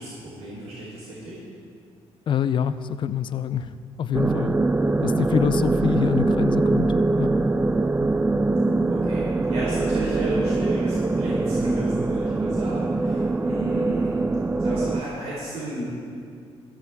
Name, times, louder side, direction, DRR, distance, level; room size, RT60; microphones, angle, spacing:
voice 1, 0.0-1.4 8.9-14.3 14.6-15.8, right 1 dB, 85° right, -7 dB, 4.2 m, -33 dB
voice 2, 2.3-4.6 5.0-7.3, left 8 dB, 50° left, 13 dB, 0.5 m, -26 dB
sound 1, 4.1-15.0, right 2 dB, 15° right, 0.4 m, -23 dB
15.0 x 15.0 x 3.6 m, 2.4 s
cardioid pair, 120°, 11 cm